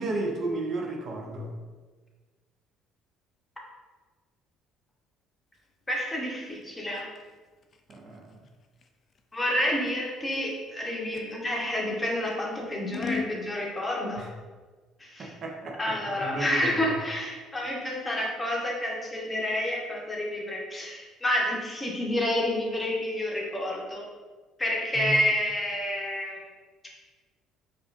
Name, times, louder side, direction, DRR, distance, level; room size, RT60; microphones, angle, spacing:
voice 1, 0.0-1.5 7.9-8.4 14.2-14.3 15.2-16.8 25.0-25.2, right 2 dB, 50° right, 1 dB, 0.6 m, -33 dB
Scissors, 5.5-11.7 12.2-13.4, left 5 dB, 45° left, 0.3 m, -40 dB
voice 2, 5.9-7.1 9.3-14.3 15.0-15.3 15.8-24.0 24.6-26.5, left 1 dB, 20° left, -2 dB, 1.0 m, -29 dB
4.7 x 2.5 x 2.5 m, 1.4 s
supercardioid pair, 70°, 0 cm